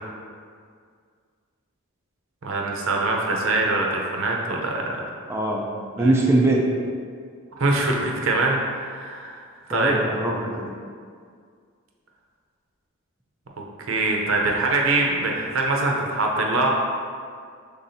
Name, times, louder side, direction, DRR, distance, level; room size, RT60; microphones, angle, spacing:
voice 1, 2.4-5.0 6.0-6.1 7.6-9.4 9.7-10.0 13.9-16.7, right 2 dB, 70° right, 0 dB, 0.6 m, -23 dB
voice 2, 5.3-5.6 6.0-6.7 9.7-10.8, right 2 dB, 10° right, -1 dB, 0.4 m, -22 dB
5.6 x 3.5 x 2.7 m, 2.1 s
head